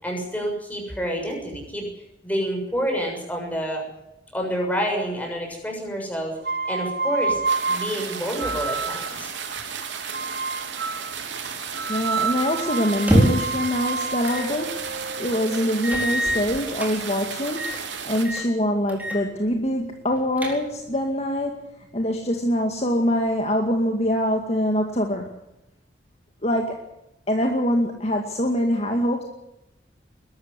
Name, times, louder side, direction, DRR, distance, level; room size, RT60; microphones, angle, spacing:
voice 1, 0.0-1.9 2.2-3.8 4.3-6.3 6.7-9.3, equal, 10° left, 1 dB, 6.9 m, -28 dB
sound 1, 6.4-9.2 10.1-11.1 11.7-15.7, right 4 dB, 60° right, 1.3 m, -29 dB
sound 2, 7.4-18.2, right 6 dB, 85° right, 3.6 m, -34 dB
voice 2, 11.9-14.9 15.2-25.4 26.4-26.8 27.3-29.2, equal, 35° left, 3 dB, 2.1 m, -24 dB
sound 3, 12.9-13.6 14.3-14.5 14.9-15.0 15.8-16.9 17.5-17.8 18.1-18.5 18.9-19.2 19.5-19.6 20.1-20.9, equal, 10° right, 4.1 m, -24 dB
21.5 x 13.0 x 10.0 m, 0.91 s
head